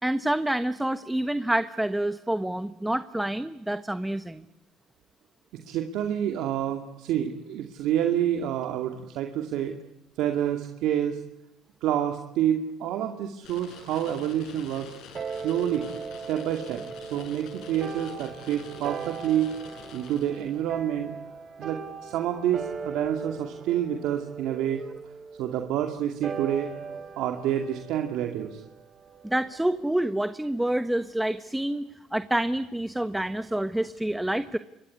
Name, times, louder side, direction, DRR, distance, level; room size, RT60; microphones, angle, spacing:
voice 1, 0.0-4.4 29.2-34.6, right 1 dB, 5° right, 12 dB, 1.2 m, -28 dB
voice 2, 5.7-9.7 10.2-11.2 11.8-14.9 15.3-15.9 16.3-19.5 19.9-21.1 21.6-24.8 25.4-26.7 27.2-28.6, right 10 dB, 75° right, 5 dB, 2.4 m, -28 dB
sound 1, 13.4-20.7, left 6 dB, 75° left, 7.6 m, -47 dB
sound 2, 15.1-29.9, right 5 dB, 40° right, 3.4 m, -40 dB
27.0 x 22.0 x 9.8 m, 1.0 s
supercardioid pair, 85°, 0 cm